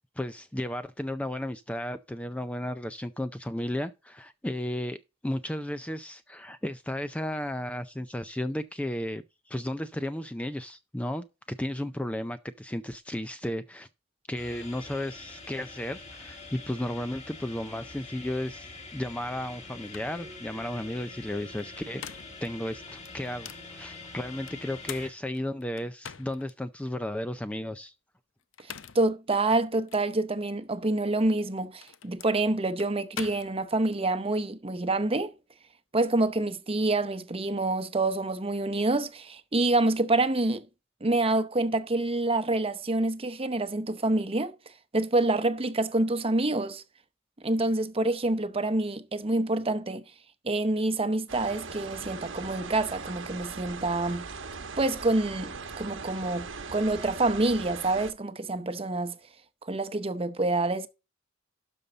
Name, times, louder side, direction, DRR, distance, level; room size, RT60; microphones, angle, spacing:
voice 1, 0.2-5.0 5.2-13.9 14.3-22.0 22.4-27.9, left 1 dB, 5° left, 0.4 m, -34 dB
sound 1, 14.4-25.1, left 3 dB, 35° left, 2.5 m, -45 dB
sound 2, 19.5-19.6 19.9-20.2 21.6-22.5 23.1-23.7 24.5-26.5 27.1-27.2 28.4-29.1 29.9-30.1 31.3-34.0, left 8 dB, 75° left, 0.6 m, -44 dB
voice 2, 28.9-35.3 35.9-40.7 41.0-44.5 44.9-46.8 47.4-50.0 50.4-54.3 54.8-59.2 59.6-60.9, right 2 dB, 30° right, 0.8 m, -27 dB
sound 3, 51.3-58.1, right 4 dB, 75° right, 1.1 m, -40 dB
12.5 x 5.4 x 3.9 m
head